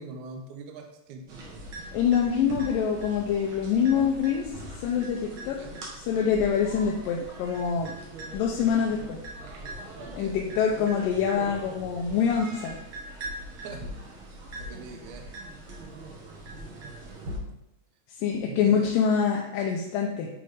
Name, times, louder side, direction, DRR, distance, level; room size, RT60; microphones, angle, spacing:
voice 1, 0.0-1.5 5.5-5.8 10.0-10.4 13.6-13.9 14.6-15.3 18.4-18.9, right 4 dB, 75° right, 4 dB, 2.0 m, -42 dB
sound 1, 1.3-17.4, right 1 dB, 55° right, 1.6 m, -41 dB
voice 2, 1.9-4.5 4.8-5.6 5.9-7.9 8.3-9.2 10.2-12.8 18.2-20.3, left 7 dB, 85° left, -1 dB, 2.3 m, -25 dB
8.8 x 3.4 x 4.9 m, 0.87 s
omnidirectional pair, 3.9 m